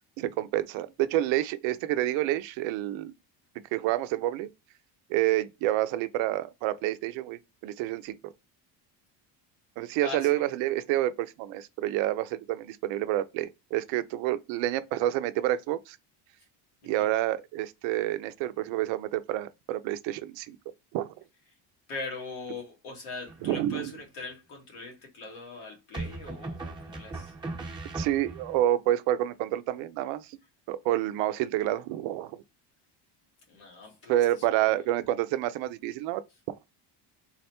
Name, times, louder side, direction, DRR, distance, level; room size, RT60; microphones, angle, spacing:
voice 1, 0.0-3.1 3.7-4.5 5.1-8.3 9.8-16.0 16.8-20.6 20.9-21.1 23.4-23.9 27.9-30.4 30.7-32.4 34.1-36.2 36.5-36.6, right 14 dB, 70° right, 0.5 m, -28 dB
voice 2, 10.0-10.4 16.8-17.1 21.9-27.3 33.5-34.2 34.6-34.7, left 3 dB, 80° left, 1.6 m, -41 dB
sound 1, 23.3-23.9 25.9-28.6, right 2 dB, 10° right, 0.8 m, -38 dB
3.9 x 2.1 x 2.8 m
supercardioid pair, 85°, 47 cm